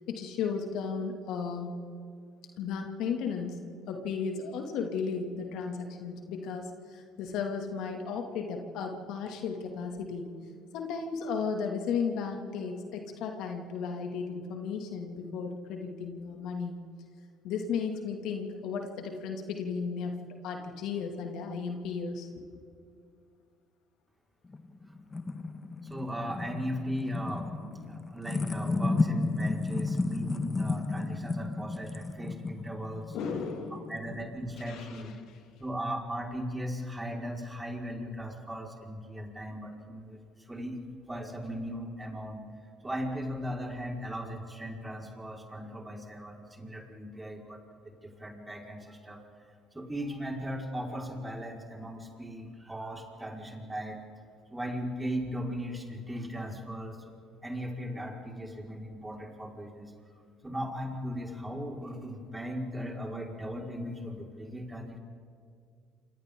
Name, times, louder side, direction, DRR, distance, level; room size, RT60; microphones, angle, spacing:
voice 1, 0.1-1.8 2.6-3.6 3.9-10.3 10.7-16.8 17.4-20.2 20.4-22.5 33.1-34.0 34.7-35.1, left 5 dB, 65° left, 3 dB, 2.3 m, -34 dB
sound 1, 24.5-34.6, left 3 dB, 25° left, 1.5 m, -33 dB
voice 2, 25.8-33.2 33.9-35.2 35.6-40.8 41.1-42.4 42.8-49.3 49.7-54.0 54.5-57.1 57.4-60.1 60.4-65.0, equal, 15° right, -1 dB, 4.9 m, -38 dB
28.5 x 27.0 x 3.8 m, 2.2 s
hypercardioid pair, 60°, 0 cm